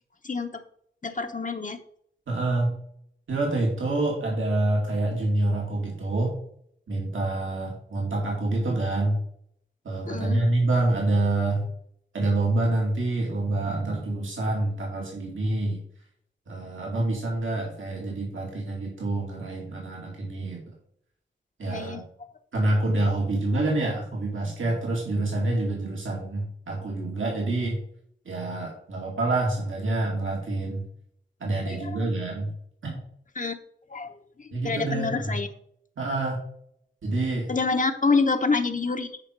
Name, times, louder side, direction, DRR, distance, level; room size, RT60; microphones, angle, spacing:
voice 1, 1.0-1.8 10.1-10.4 21.7-22.0 31.7-31.9 33.4-33.5 33.9-34.1 34.4-35.5 37.5-39.2, left 4 dB, 40° left, 6 dB, 0.8 m, -27 dB
voice 2, 2.3-2.7 3.3-6.4 6.9-9.2 9.8-11.7 12.1-15.8 16.5-20.6 21.6-22.0 22.5-27.8 28.2-30.8 31.4-32.5 32.8-32.9 34.5-35.4 36.0-36.4 37.0-37.5, right 2 dB, 85° right, -2 dB, 2.6 m, -27 dB
9.7 x 5.0 x 4.6 m, 0.67 s
wide cardioid pair, 70°, 20 cm